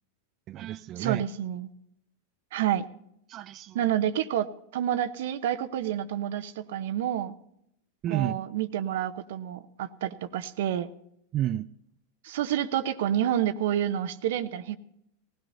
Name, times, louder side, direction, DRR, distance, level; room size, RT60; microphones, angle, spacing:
voice 1, 0.5-1.2 3.3-3.8 8.0-8.4 11.3-11.7, right 12 dB, 40° right, 9 dB, 0.5 m, -31 dB
voice 2, 1.0-1.7 2.5-2.9 3.7-7.3 8.1-10.9 12.2-14.8, right 11 dB, 70° right, 12 dB, 0.9 m, -29 dB
19.0 x 16.5 x 2.7 m, 0.76 s
hypercardioid pair, 105°, 0 cm